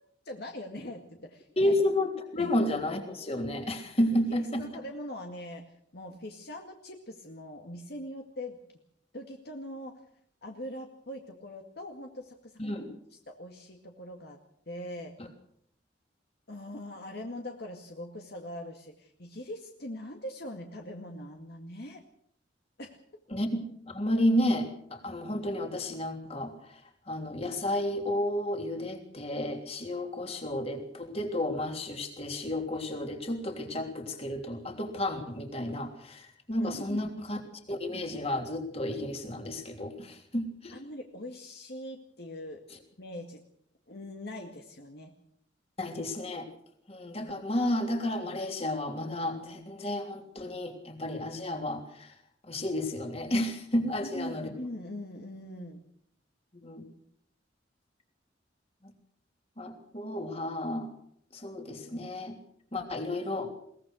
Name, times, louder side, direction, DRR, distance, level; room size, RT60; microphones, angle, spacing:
voice 1, 0.3-1.7 2.4-2.6 4.6-5.6 5.9-8.6 9.1-10.0 10.4-12.5 13.1-14.4 14.7-15.1 16.5-22.0 22.8-23.0 36.6-37.1 40.7-42.6 43.0-43.4 43.9-45.1 53.8-55.8, left 1 dB, 60° left, 3 dB, 2.1 m, -41 dB
voice 2, 1.6-4.6 12.6-12.9 15.2-15.3 23.3-26.5 27.1-37.4 37.7-40.7 45.8-46.5 46.9-52.1 52.5-54.5 56.5-56.8 59.6-60.9 61.3-62.4 62.7-63.5, left 1 dB, 35° left, 4 dB, 3.3 m, -31 dB
22.0 x 19.0 x 6.4 m, 0.67 s
head